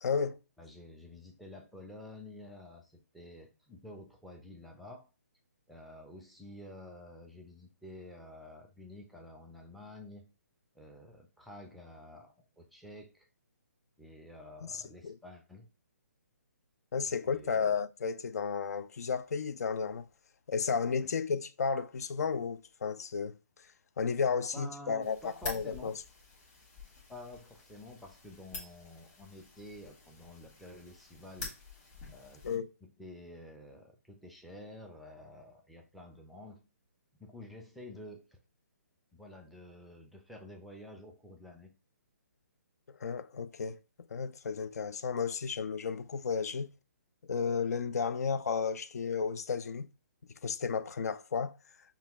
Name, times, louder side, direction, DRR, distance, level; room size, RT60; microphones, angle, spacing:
voice 1, 0.0-0.4 14.7-15.1 16.9-20.0 20.5-23.4 24.0-25.9 32.4-32.7 43.0-43.8 44.1-46.7 47.3-49.9 50.4-51.6, left 5 dB, 70° left, 0.4 m, -33 dB
voice 2, 0.6-5.1 5.7-10.3 10.7-13.3 14.0-15.7 17.0-17.8 21.0-21.1 24.5-26.0 27.1-31.5 32.1-32.5 32.8-36.6 37.2-38.4 39.1-41.7, left 1 dB, ahead, 0.4 m, -50 dB
sound 1, 25.0-32.6, left 3 dB, 20° left, 1.3 m, -48 dB
5.5 x 2.3 x 3.5 m
hypercardioid pair, 160°, 9 cm